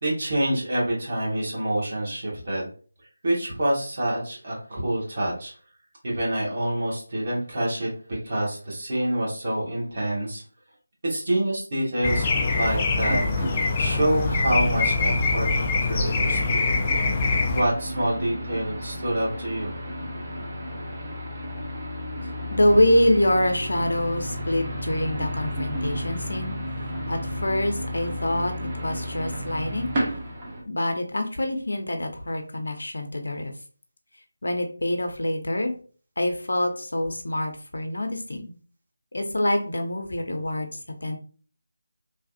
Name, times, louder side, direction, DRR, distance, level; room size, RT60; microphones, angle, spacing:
voice 1, 0.0-2.7 3.2-5.5 6.0-10.4 11.0-13.2 13.5-15.5 15.8-16.6 17.5-19.8, right 1 dB, 45° right, -4 dB, 1.4 m, -27 dB
sound 1, 12.0-17.6, left 3 dB, 20° left, 0.3 m, -24 dB
sound 2, 13.0-30.6, equal, 25° right, 0.8 m, -33 dB
voice 2, 22.5-26.6 27.1-28.5 28.8-29.9 30.7-33.5 34.4-35.7 36.2-38.5 39.1-41.2, left 1 dB, 65° left, 5 dB, 0.6 m, -25 dB
3.2 x 2.3 x 2.7 m, 0.41 s
figure-of-eight pair, 160°, 0 cm